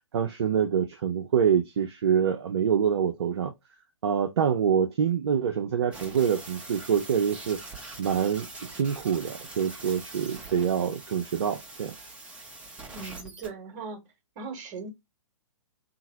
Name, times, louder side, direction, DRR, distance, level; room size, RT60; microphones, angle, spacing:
voice 1, 0.1-3.5 4.0-7.6 8.0-11.9, right 7 dB, 55° right, 0.4 m, -26 dB
sound 1, 5.9-13.5, right 2 dB, 5° right, 0.6 m, -43 dB
voice 2, 12.9-14.0 14.3-14.9, right 4 dB, 35° right, 1.0 m, -38 dB
2.8 x 2.4 x 2.7 m
figure-of-eight pair, 120°, 16 cm